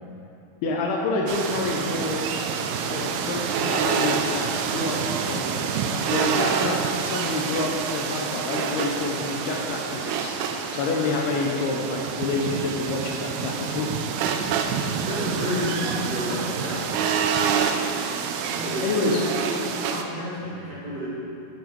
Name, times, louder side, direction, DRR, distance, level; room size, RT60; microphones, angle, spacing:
voice 1, 0.6-2.2 2.8-5.0 5.3-5.7 6.1-10.3 10.7-13.9 18.8-19.2, left 3 dB, 80° left, -1 dB, 2.4 m, -28 dB
sound 1, 1.3-20.0, right 6 dB, 90° right, 2.2 m, -27 dB
voice 2, 15.1-16.9 18.5-21.1, equal, 65° right, -10 dB, 1.7 m, -30 dB
9.2 x 6.8 x 4.6 m, 2.8 s
omnidirectional pair, 5.0 m